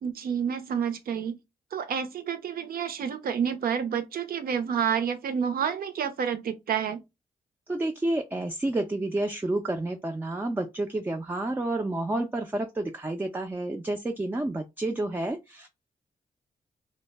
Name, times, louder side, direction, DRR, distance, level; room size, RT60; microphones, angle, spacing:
voice 1, 0.0-1.4 1.7-7.0, right 7 dB, 70° right, 0.5 m, -29 dB
voice 2, 7.7-15.7, right 2 dB, 15° right, 0.3 m, -30 dB
2.1 x 2.0 x 3.2 m
cardioid pair, 75°, 16 cm